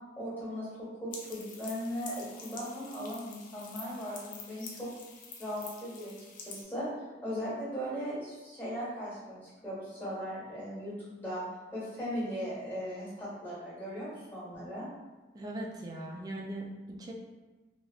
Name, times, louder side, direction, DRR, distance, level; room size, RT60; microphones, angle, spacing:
voice 1, 0.2-4.9 5.4-6.1 6.4-6.9 7.2-11.4 11.7-14.9, equal, 10° left, -10 dB, 1.4 m, -38 dB
sound 1, 1.1-6.6, left 4 dB, 45° left, 0.4 m, -47 dB
voice 2, 15.3-17.1, right 1 dB, 20° right, -1 dB, 0.3 m, -40 dB
3.3 x 2.4 x 2.4 m, 1.2 s
head